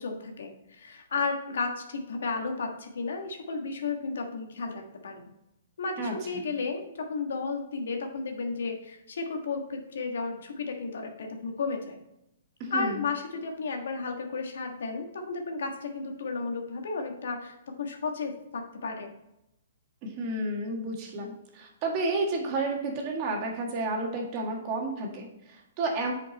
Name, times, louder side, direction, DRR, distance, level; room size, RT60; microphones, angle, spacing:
voice 1, 0.0-5.3 5.8-12.0 12.7-19.1, left 4 dB, 75° left, 3 dB, 1.5 m, -33 dB
voice 2, 6.0-6.4 12.6-13.0 20.0-26.1, right 2 dB, 35° right, 1 dB, 1.7 m, -31 dB
7.3 x 5.2 x 4.1 m, 0.85 s
hypercardioid pair, 150°, 0 cm